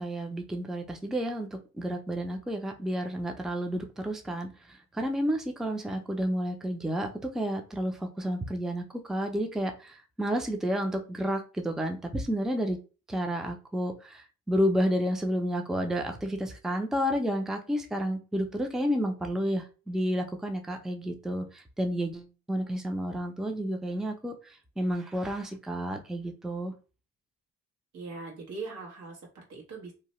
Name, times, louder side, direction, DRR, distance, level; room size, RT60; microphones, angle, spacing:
voice 1, 0.0-8.8 9.1-12.8 13.1-24.3 24.8-26.7, equal, ahead, 4 dB, 0.5 m, -31 dB
voice 2, 27.9-29.9, right 3 dB, 80° right, -2 dB, 1.3 m, -41 dB
2.8 x 2.2 x 3.0 m, 0.33 s
cardioid pair, 90°, 30 cm